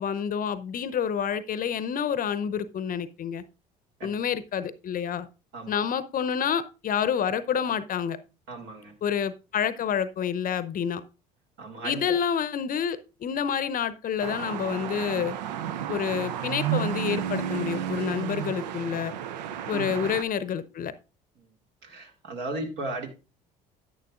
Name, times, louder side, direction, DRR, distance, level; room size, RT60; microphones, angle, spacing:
voice 1, 0.0-3.4 4.0-5.3 5.7-8.2 9.0-11.0 11.8-15.4 15.9-19.1 19.7-20.9, left 8 dB, 40° left, 15 dB, 0.7 m, -28 dB
voice 2, 8.5-8.9 11.6-12.0 19.7-19.8 21.8-23.1, right 2 dB, 65° right, 3 dB, 2.2 m, -35 dB
sound 1, 14.2-20.2, right 10 dB, 80° right, 0.5 m, -32 dB
10.0 x 8.8 x 2.4 m, 0.30 s
hypercardioid pair, 60°, 21 cm